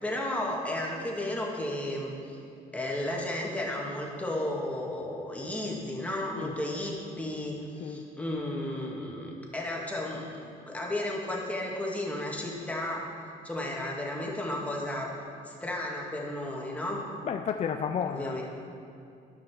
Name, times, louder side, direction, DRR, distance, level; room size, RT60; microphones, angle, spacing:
voice 1, 0.0-2.4 2.7-10.3 10.7-13.1 13.4-15.1 15.4-17.0 18.1-18.4, left 1 dB, 10° left, -3 dB, 2.0 m, -33 dB
voice 2, 17.2-18.4, left 7 dB, 40° left, 5 dB, 0.5 m, -32 dB
13.5 x 5.9 x 6.2 m, 2.6 s
cardioid pair, 110°, 17 cm